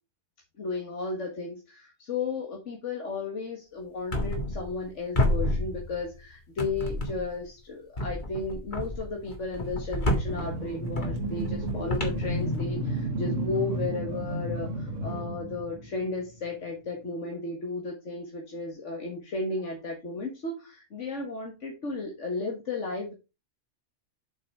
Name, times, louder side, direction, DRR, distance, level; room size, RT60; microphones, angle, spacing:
voice 1, 0.6-23.1, left 3 dB, 75° left, 1 dB, 1.9 m, -34 dB
sound 1, 4.1-4.9 5.1-6.2 6.6-7.4 8.0-13.0, left 1 dB, 40° left, 1.9 m, -31 dB
sound 2, 10.3-16.5, right 1 dB, 80° right, 1.6 m, -32 dB
7.7 x 5.8 x 4.6 m, 0.28 s
omnidirectional pair, 1.3 m